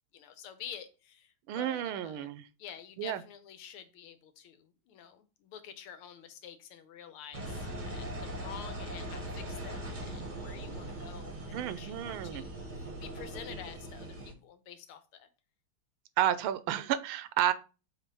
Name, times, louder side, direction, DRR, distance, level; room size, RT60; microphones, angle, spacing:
voice 1, 0.1-2.3 2.6-15.3, left 9 dB, 80° left, 1.6 m, -49 dB
voice 2, 1.5-2.5 3.0-3.2 11.5-12.4 16.2-17.5, right 11 dB, 80° right, 1.4 m, -31 dB
Engine, 7.3-14.3, right 1 dB, 35° right, 0.8 m, -40 dB
4.4 x 4.2 x 5.3 m
omnidirectional pair, 2.4 m